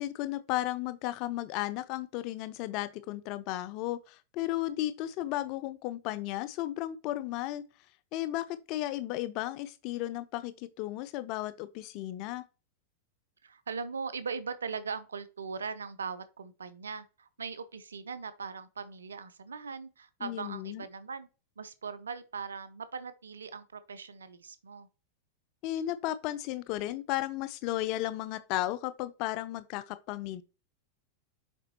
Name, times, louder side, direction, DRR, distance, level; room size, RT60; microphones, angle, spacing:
voice 1, 0.0-7.6 8.1-12.4 20.2-20.8 25.6-30.4, left 15 dB, 40° left, 0.4 m, -34 dB
voice 2, 13.4-21.3 21.6-24.9, right 5 dB, 70° right, 0.7 m, -40 dB
6.7 x 5.1 x 2.9 m
figure-of-eight pair, 90°, 0 cm